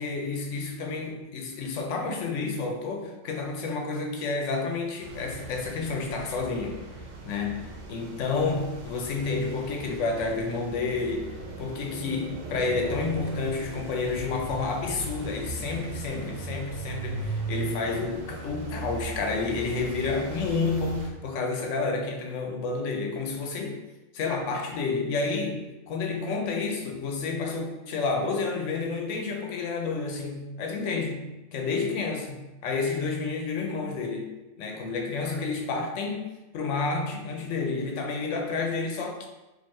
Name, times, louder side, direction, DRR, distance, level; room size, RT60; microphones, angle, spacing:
voice 1, 0.0-6.8 7.2-7.6 7.9-11.3 11.6-23.8 24.1-34.3 34.6-39.3, left 4 dB, 75° left, 2 dB, 1.0 m, -30 dB
sound 1, 5.0-21.1, right 3 dB, 85° right, 1.1 m, -38 dB
4.2 x 2.7 x 3.1 m, 1.1 s
omnidirectional pair, 1.3 m